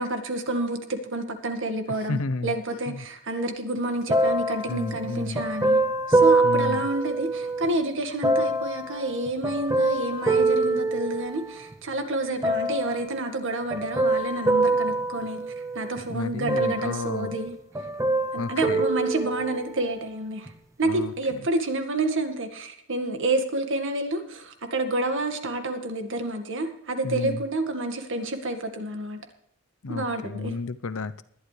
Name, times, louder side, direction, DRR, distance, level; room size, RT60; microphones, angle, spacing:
voice 1, 0.0-5.8 6.1-15.4 15.7-17.5 18.3-20.5 20.8-29.2 29.9-30.5, right 2 dB, 60° right, 6 dB, 1.9 m, -29 dB
voice 2, 2.1-2.5 2.9-3.1 4.7-5.4 6.4-6.9 16.1-17.4 18.4-18.8 20.8-21.5 27.0-27.4 29.8-31.2, left 3 dB, 70° left, 14 dB, 0.8 m, -32 dB
sound 1, 4.1-7.7 8.2-11.7 12.4-13.1 13.7-16.0 16.5-17.5 17.7-19.8 20.5-20.6, right 2 dB, 15° right, 0.7 m, -25 dB
19.5 x 12.0 x 3.3 m, 0.71 s
head